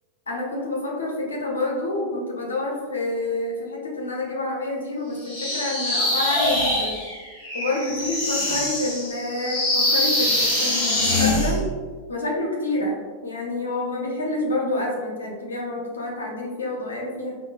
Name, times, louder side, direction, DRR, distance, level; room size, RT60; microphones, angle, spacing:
voice 1, 0.3-7.0 7.5-11.7 12.1-17.4, left 2 dB, 70° left, -1 dB, 0.8 m, -28 dB
sound 1, 5.2-11.6, left 1 dB, 45° left, 1.3 m, -24 dB
4.8 x 2.6 x 2.3 m, 1.5 s
figure-of-eight pair, 90°, 0 cm